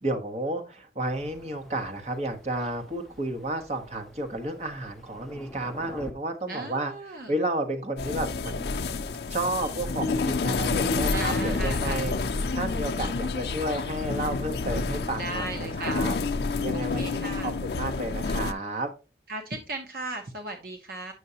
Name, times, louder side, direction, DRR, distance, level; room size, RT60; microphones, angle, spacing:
voice 1, 0.0-8.7 9.3-16.2 16.6-18.9, right 1 dB, 40° right, 4 dB, 1.1 m, -32 dB
Thunder, 1.0-6.1, equal, ahead, 0.7 m, -47 dB
voice 2, 6.5-7.3 11.1-12.0 15.2-16.0 16.7-17.5 19.3-21.1, right 2 dB, 55° right, 4 dB, 0.8 m, -36 dB
sound 1, 8.0-18.5, left 3 dB, 65° left, 0.5 m, -29 dB
8.1 x 6.1 x 2.8 m, 0.31 s
head